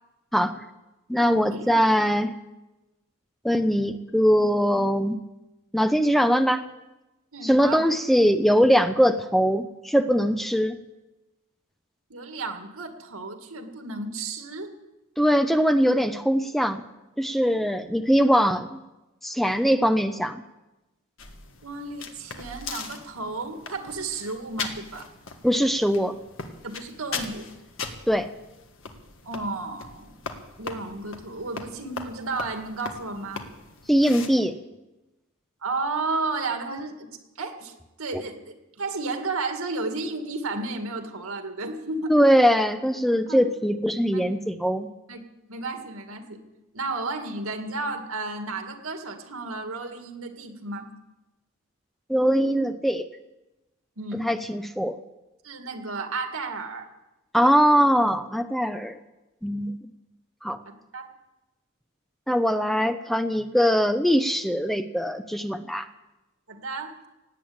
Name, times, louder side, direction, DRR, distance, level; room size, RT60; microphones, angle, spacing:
voice 1, 0.3-0.6 1.1-2.3 3.4-5.2 5.7-6.6 7.4-10.8 15.2-16.8 17.2-18.8 19.2-20.4 25.4-26.1 28.1-28.3 33.9-34.6 38.1-38.2 42.1-44.9 52.1-53.1 54.2-55.0 57.3-59.0 59.4-59.8 60.4-60.6 62.3-65.9, equal, ahead, 9 dB, 0.5 m, -21 dB
voice 2, 7.3-7.8 12.1-14.7 17.5-17.6 21.6-25.1 26.6-27.5 29.2-30.1 30.6-33.5 35.6-37.1 37.4-37.7 38.0-42.2 43.3-43.4 44.1-44.3 45.1-45.2 45.5-46.4 46.7-50.9 54.0-54.2 55.4-56.9 60.7-61.1 66.5-66.9, right 3 dB, 90° right, 5 dB, 2.1 m, -33 dB
sound 1, 21.2-34.3, left 4 dB, 65° left, 1.6 m, -39 dB
17.5 x 8.9 x 8.6 m, 1.0 s
head